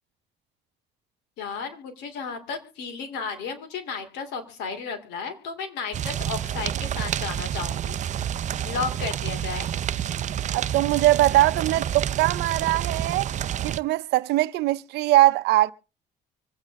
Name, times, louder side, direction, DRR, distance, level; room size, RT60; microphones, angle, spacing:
voice 1, 1.4-8.0 8.6-9.7, left 5 dB, 90° left, 2.9 m, -33 dB
sound 1, 5.9-13.8, right 10 dB, 45° right, 0.6 m, -29 dB
voice 2, 10.5-13.3 13.6-15.7, right 16 dB, 80° right, 0.7 m, -21 dB
25.0 x 8.8 x 3.5 m
cardioid pair, 110°, 17 cm